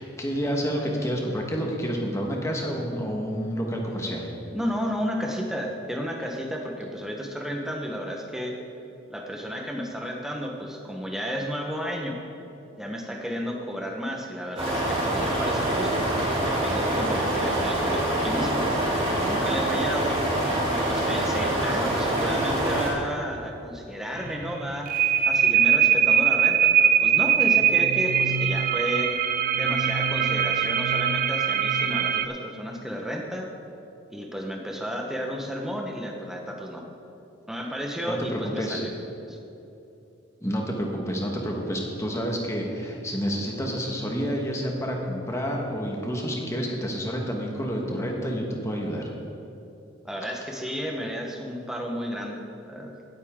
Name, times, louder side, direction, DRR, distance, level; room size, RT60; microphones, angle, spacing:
voice 1, 0.0-4.3 38.1-38.8 40.4-49.1, equal, 15° left, 0 dB, 1.4 m, -29 dB
voice 2, 4.5-8.6 9.1-12.2 12.8-18.7 19.2-20.1 20.7-25.0 25.3-29.1 29.6-33.5 34.1-36.8 37.5-38.9 39.2-39.4 50.0-53.0, equal, ahead, 1 dB, 1.1 m, -32 dB
sound 1, 14.6-22.9, right 1 dB, 30° right, 2.9 m, -25 dB
sound 2, 24.2-32.3, right 8 dB, 45° right, 0.4 m, -22 dB
17.5 x 8.3 x 3.7 m, 2.9 s
head